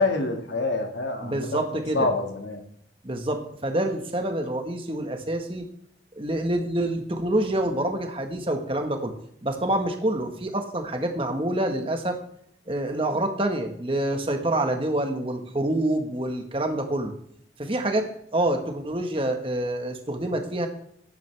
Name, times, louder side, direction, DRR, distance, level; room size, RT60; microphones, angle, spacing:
voice 1, 0.0-1.6 1.9-2.6, left 3 dB, 85° left, 3 dB, 2.1 m, -26 dB
voice 2, 1.2-2.1 3.0-5.6 6.1-9.1 9.4-12.2 12.7-17.1 17.6-20.7, right 1 dB, 30° right, 4 dB, 1.4 m, -27 dB
14.0 x 10.0 x 3.5 m, 0.70 s
head